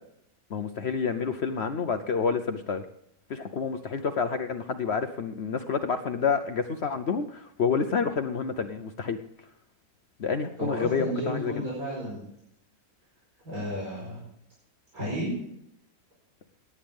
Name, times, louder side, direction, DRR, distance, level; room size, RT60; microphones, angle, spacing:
voice 1, 0.5-2.8 3.3-9.2 10.2-11.6, left 5 dB, 55° left, 8 dB, 1.0 m, -28 dB
voice 2, 10.6-12.2 13.4-14.2 14.9-15.3, equal, 85° right, -5 dB, 5.3 m, -32 dB
17.5 x 9.8 x 3.6 m, 0.73 s
omnidirectional pair, 1.5 m